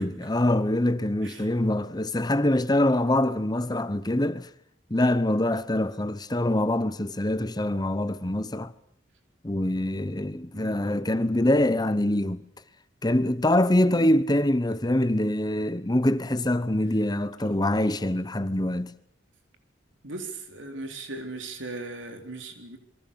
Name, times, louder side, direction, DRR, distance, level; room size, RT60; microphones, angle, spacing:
voice 1, 0.0-4.5 4.9-8.7 9.4-12.4 13.0-18.9, left 1 dB, 20° left, 1.0 m, -24 dB
voice 2, 10.5-11.0 13.9-14.1 17.5-17.7 20.0-22.8, right 2 dB, 80° right, 4.0 m, -39 dB
27.5 x 23.0 x 7.0 m
head